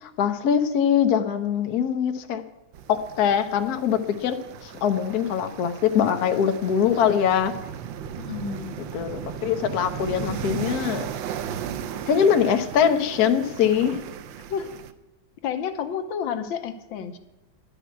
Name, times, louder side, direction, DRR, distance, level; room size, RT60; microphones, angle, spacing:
voice 1, 0.0-2.4 2.9-4.3 4.6-7.5 8.8-11.1 12.1-14.0, left 8 dB, 60° left, 7 dB, 1.2 m, -22 dB
sound 1, 2.7-14.9, right 9 dB, 75° right, 1.4 m, -36 dB
voice 2, 8.1-8.8 14.5-14.7 15.4-17.2, left 7 dB, 75° left, 8 dB, 1.6 m, -30 dB
11.5 x 6.0 x 9.2 m, 1.0 s
omnidirectional pair, 2.2 m